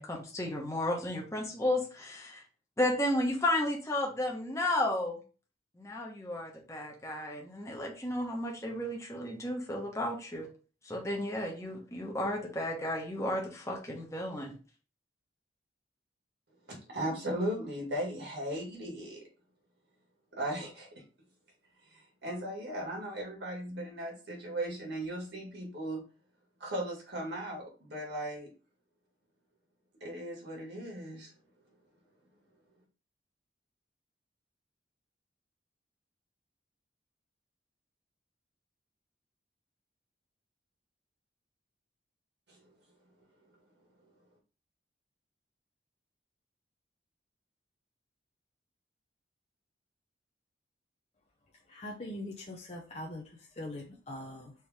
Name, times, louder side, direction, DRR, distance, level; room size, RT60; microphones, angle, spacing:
voice 1, 0.0-2.4 2.8-5.2 5.8-10.5 10.8-14.6, left 1 dB, 15° left, -1 dB, 1.1 m, -33 dB
voice 2, 16.7-19.2 20.3-21.0 21.9-26.0 26.6-28.5 30.0-31.3 42.5-42.7, right 1 dB, 75° right, -1 dB, 2.0 m, -37 dB
voice 3, 51.7-54.5, left 1 dB, 40° left, -2 dB, 0.7 m, -42 dB
4.5 x 3.1 x 3.5 m, 0.36 s
head